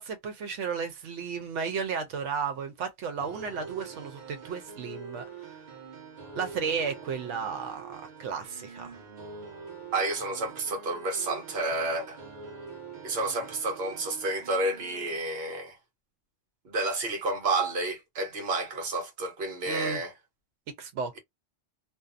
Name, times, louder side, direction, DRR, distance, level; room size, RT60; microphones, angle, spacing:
voice 1, 0.0-5.2 6.4-8.9 19.7-20.0 20.8-21.2, right 6 dB, 85° right, 1.0 m, -33 dB
sound 1, 3.2-15.2, right 4 dB, 45° right, 0.9 m, -45 dB
voice 2, 9.9-12.2 13.0-15.8 16.6-20.1, right 2 dB, 60° right, 1.0 m, -30 dB
2.6 x 2.3 x 2.4 m
omnidirectional pair, 1.2 m